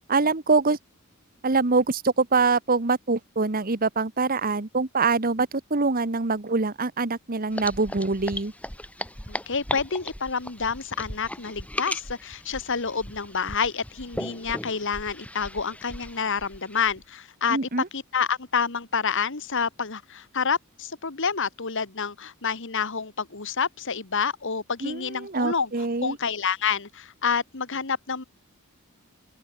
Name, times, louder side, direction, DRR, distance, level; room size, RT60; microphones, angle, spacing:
voice 1, 0.1-0.8 1.4-8.5 17.5-17.9 24.8-26.2, right 4 dB, 40° right, 1.2 m, -24 dB
sound 1, 7.5-17.0, left 1 dB, 5° left, 4.2 m, -37 dB
voice 2, 9.3-17.6 17.9-25.7 26.0-28.2, left 6 dB, 60° left, 1.8 m, -28 dB
open air
head